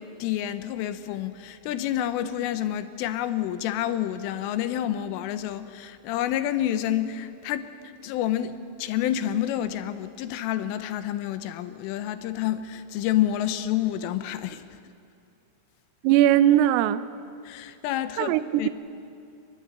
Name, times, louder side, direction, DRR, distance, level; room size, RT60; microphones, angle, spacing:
voice 1, 0.0-7.7 8.0-14.8 17.4-18.7, left 11 dB, 85° left, 3.5 m, -29 dB
voice 2, 16.0-17.1 18.2-18.7, right 12 dB, 90° right, 3.5 m, -20 dB
23.0 x 21.0 x 10.0 m
omnidirectional pair, 5.8 m